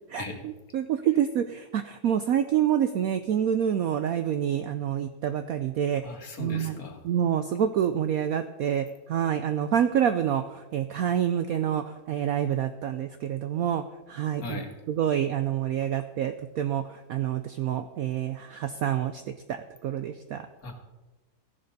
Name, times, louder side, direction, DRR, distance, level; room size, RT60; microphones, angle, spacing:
voice 1, 0.1-6.0 6.4-6.8 7.0-13.8 14.1-14.6 14.9-19.2 19.5-20.5, right 9 dB, 75° right, 9 dB, 0.8 m, -27 dB
voice 2, 6.0-7.0 14.4-14.7 20.6-20.7, left 3 dB, 50° left, 3 dB, 2.0 m, -38 dB
14.5 x 11.0 x 4.0 m, 1.1 s
omnidirectional pair, 2.0 m